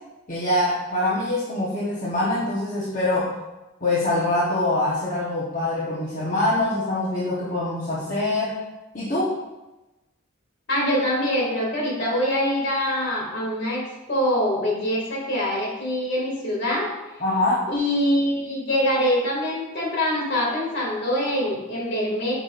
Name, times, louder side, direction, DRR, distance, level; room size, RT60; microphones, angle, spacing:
voice 1, 0.3-3.3 3.8-8.6 8.9-9.4 17.2-17.7, left 2 dB, 40° left, -7 dB, 1.2 m, -24 dB
voice 2, 10.7-16.9 17.7-22.3, equal, 60° left, -3 dB, 2.3 m, -24 dB
8.0 x 6.2 x 2.5 m, 1.0 s
head